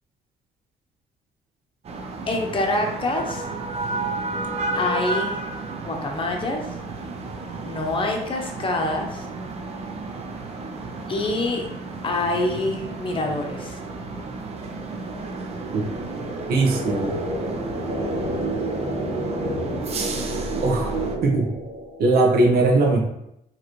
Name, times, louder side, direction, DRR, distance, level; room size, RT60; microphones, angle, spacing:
sound 1, 1.8-21.2, right 3 dB, 40° right, 0.7 m, -33 dB
voice 1, 2.3-3.5 4.7-5.4 5.8-6.6 7.6-9.3 11.1-11.7 12.0-13.8, left 2 dB, 30° left, 2 dB, 0.8 m, -26 dB
sound 2, 13.5-22.2, right 1 dB, 20° right, 1.4 m, -30 dB
voice 2, 16.5-17.2 20.6-21.5 22.0-23.0, right 2 dB, 65° right, 1 dB, 1.1 m, -20 dB
4.7 x 3.1 x 3.1 m, 0.82 s
cardioid pair, 110°, 17 cm